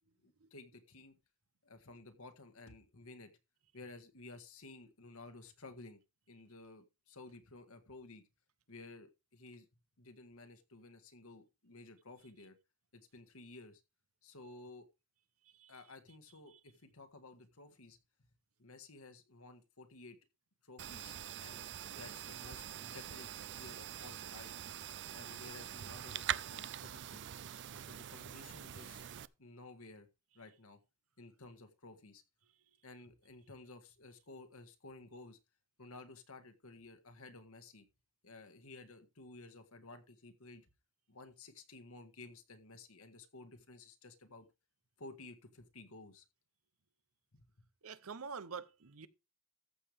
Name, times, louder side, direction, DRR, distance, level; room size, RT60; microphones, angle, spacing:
voice 1, 0.2-1.1 1.6-3.3 3.7-6.0 6.3-8.2 8.7-9.7 10.0-12.6 12.9-13.8 14.2-14.9 15.7-18.0 18.6-20.2 20.6-24.5 25.1-27.2 27.9-30.1 30.3-30.8 31.2-32.2 32.8-35.4 35.8-37.8 38.2-40.7 41.1-44.5 45.0-46.2 47.3-47.4, left 2 dB, 70° left, 1.7 m, -54 dB
voice 2, 15.4-15.9 16.5-16.6 27.7-27.9 47.8-49.1, right 5 dB, 70° right, 0.8 m, -47 dB
sound 1, 20.8-29.3, right 11 dB, 55° right, 0.4 m, -44 dB
14.0 x 6.7 x 3.5 m
head